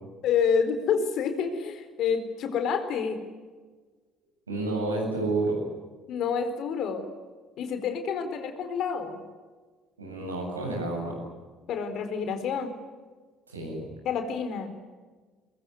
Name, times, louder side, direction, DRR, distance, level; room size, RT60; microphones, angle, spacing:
voice 1, 0.2-3.2 6.1-7.0 7.6-9.2 11.7-12.7 14.0-14.7, left 6 dB, 55° left, 8 dB, 4.2 m, -28 dB
voice 2, 4.5-5.6 10.0-11.1 13.5-13.8, right 2 dB, 85° right, 0 dB, 7.8 m, -30 dB
24.0 x 22.0 x 9.6 m, 1.4 s
figure-of-eight pair, 50°, 0 cm